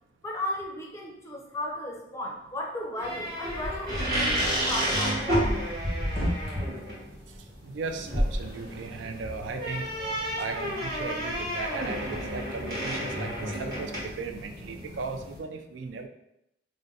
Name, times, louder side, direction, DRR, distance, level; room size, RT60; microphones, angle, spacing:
voice 1, 0.2-5.2, left 1 dB, 15° left, -1 dB, 0.5 m, -35 dB
sound 1, 3.0-15.4, equal, 55° right, 1.2 m, -32 dB
sound 2, 3.5-6.6 8.0-8.4, equal, 15° right, 1.0 m, -31 dB
voice 2, 7.6-9.9 10.4-16.1, right 4 dB, 80° right, 6 dB, 0.3 m, -37 dB
2.5 x 2.2 x 3.9 m, 0.82 s
head